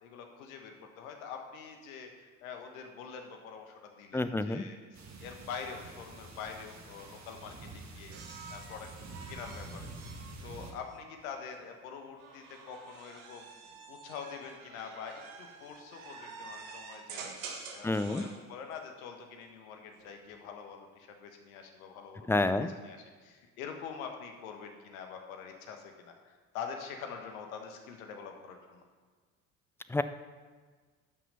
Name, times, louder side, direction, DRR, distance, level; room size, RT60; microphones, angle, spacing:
voice 1, 0.0-8.2 8.5-8.9 9.3-9.9 10.4-13.5 13.9-28.8, left 6 dB, 75° left, 4 dB, 1.4 m, -45 dB
voice 2, 4.1-4.6 17.8-18.2 22.3-22.7 29.9-30.0, left 2 dB, 5° left, 11 dB, 0.4 m, -28 dB
sound 1, 4.9-10.7, right 2 dB, 40° right, 1.8 m, -47 dB
sound 2, 8.1-11.4 12.2-18.4 19.9-20.4, right 5 dB, 75° right, 1.4 m, -48 dB
11.5 x 6.0 x 5.5 m, 1.5 s
hypercardioid pair, 60°, 42 cm